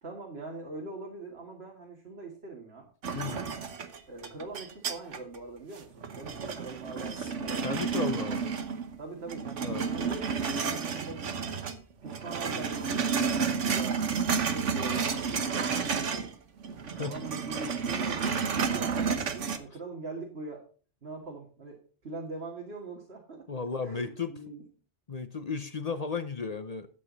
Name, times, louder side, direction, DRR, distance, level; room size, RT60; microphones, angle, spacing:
voice 1, 0.0-2.9 4.1-8.5 9.0-11.6 12.0-16.3 17.0-20.6 21.0-23.5 23.8-24.6, right 3 dB, 60° right, -1 dB, 2.4 m, -42 dB
sound 1, 3.0-5.4 5.8-9.0 9.3-11.8 12.1-16.3 16.6-19.6, right 6 dB, 90° right, 1.4 m, -31 dB
voice 2, 3.1-3.5 7.2-7.3 7.6-8.4 9.6-9.8 15.8-15.9 17.0-17.1 23.5-24.4 25.1-26.9, left 5 dB, 40° left, 10 dB, 0.7 m, -34 dB
12.5 x 8.1 x 4.0 m, 0.41 s
omnidirectional pair, 1.2 m